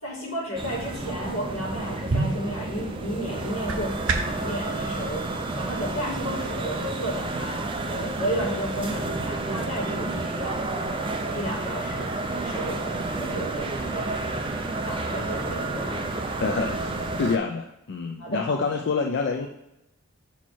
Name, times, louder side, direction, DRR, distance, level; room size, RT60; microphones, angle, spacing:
voice 1, 0.0-10.7 11.3-14.2 14.9-16.1 18.2-18.6, equal, 75° left, -2 dB, 1.9 m, -33 dB
sound 1, 0.6-17.4, right 2 dB, 25° right, 0.5 m, -30 dB
sound 2, 2.0-4.5, right 3 dB, 65° right, 0.7 m, -30 dB
voice 2, 16.4-16.8 17.2-19.5, left 4 dB, 50° left, 3 dB, 0.4 m, -26 dB
5.7 x 4.4 x 4.4 m, 0.90 s
head